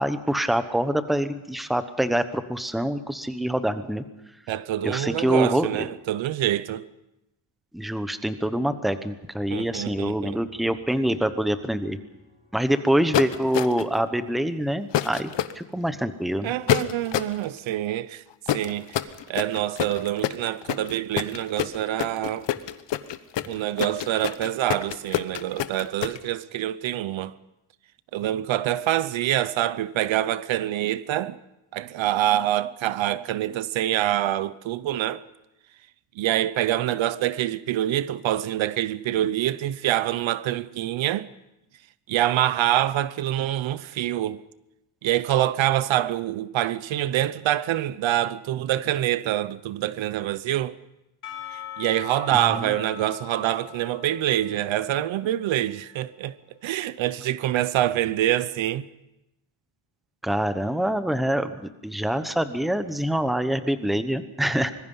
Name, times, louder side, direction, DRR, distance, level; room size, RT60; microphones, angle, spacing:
voice 1, 0.0-4.0 4.8-5.9 7.7-12.0 12.5-16.5 52.3-52.7 60.2-64.7, right 1 dB, ahead, 0.9 m, -25 dB
voice 2, 4.5-6.8 9.5-10.4 16.4-18.2 18.5-19.0 19.3-22.5 23.5-27.3 28.1-31.4 31.7-35.2 36.2-41.3 42.1-44.4 45.0-50.7 51.8-56.4 56.6-58.9, right 13 dB, 70° right, 0.8 m, -25 dB
Piano, 9.4-14.9, equal, 15° right, 6.2 m, -53 dB
sound 1, 13.1-14.0 14.9-15.5 16.7-17.4 18.5-26.2, left 12 dB, 60° left, 1.1 m, -26 dB
Percussion / Church bell, 51.2-56.3, left 13 dB, 40° left, 3.2 m, -42 dB
25.0 x 21.0 x 5.5 m
cardioid pair, 165°, 47 cm